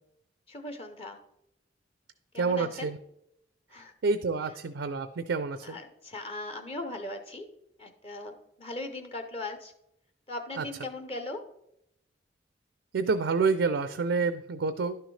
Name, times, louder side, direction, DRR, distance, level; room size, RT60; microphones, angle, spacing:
voice 1, 0.5-1.2 2.3-2.9 3.7-3.9 5.6-7.5 7.8-9.7 10.3-11.4, left 2 dB, 35° left, 6 dB, 0.7 m, -39 dB
voice 2, 2.4-3.0 4.0-5.8 10.6-10.7 12.9-15.0, right 4 dB, 85° right, 11 dB, 0.4 m, -28 dB
11.5 x 6.5 x 3.2 m, 0.79 s
head